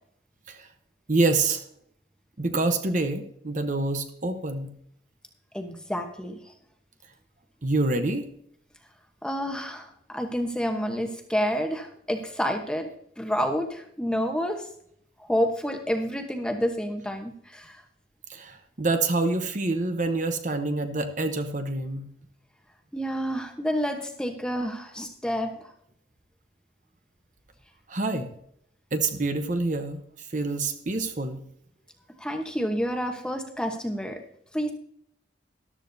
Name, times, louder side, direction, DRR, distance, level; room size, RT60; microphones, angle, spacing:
voice 1, 1.1-1.6 2.4-4.7 7.6-8.3 18.3-22.1 27.9-28.3 28.9-30.0 30.3-31.4, right 2 dB, 40° right, 7 dB, 0.9 m, -26 dB
voice 2, 5.5-6.4 9.2-12.9 13.2-14.6 15.2-17.8 22.9-25.6 32.2-34.2 34.5-34.7, equal, 5° left, 4 dB, 1.0 m, -29 dB
13.5 x 12.5 x 2.7 m, 0.68 s
head